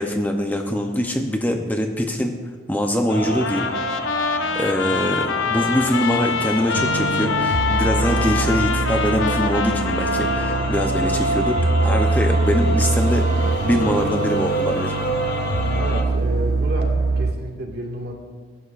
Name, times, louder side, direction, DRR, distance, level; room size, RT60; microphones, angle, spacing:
voice 1, 0.0-2.4 2.7-3.7 4.5-15.0, left 1 dB, 10° left, 3 dB, 0.6 m, -23 dB
sound 1, 3.1-16.0, right 1 dB, 55° left, 1.4 m, -28 dB
Trumpet, 3.4-10.9, left 6 dB, 85° left, 0.7 m, -25 dB
voice 2, 4.9-5.3 15.7-18.1, equal, 55° right, 0 dB, 1.9 m, -31 dB
sound 2, 6.7-17.3, right 3 dB, 80° right, 0.7 m, -23 dB
22.0 x 11.0 x 2.5 m, 1.5 s
head